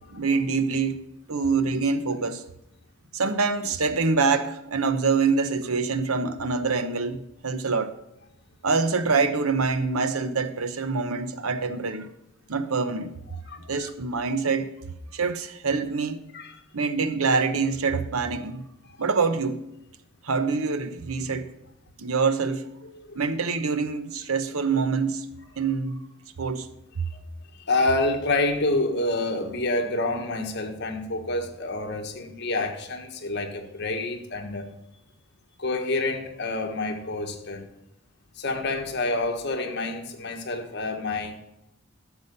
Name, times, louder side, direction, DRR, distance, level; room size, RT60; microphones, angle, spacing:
voice 1, 0.1-2.4 3.1-8.0 8.6-12.1 12.5-13.2 13.7-14.7 15.1-16.2 16.7-18.7 19.0-19.7 20.2-21.5 22.0-22.7 23.1-25.3 25.6-26.0 26.4-26.7 27.0-27.1, right 4 dB, 90° right, 0.9 m, -25 dB
voice 2, 13.5-13.9 16.3-16.6 22.9-23.2 27.1-27.2 27.5-34.7 35.6-37.6 38.4-41.4, left 2 dB, 50° left, 1.5 m, -28 dB
12.0 x 7.0 x 5.4 m
head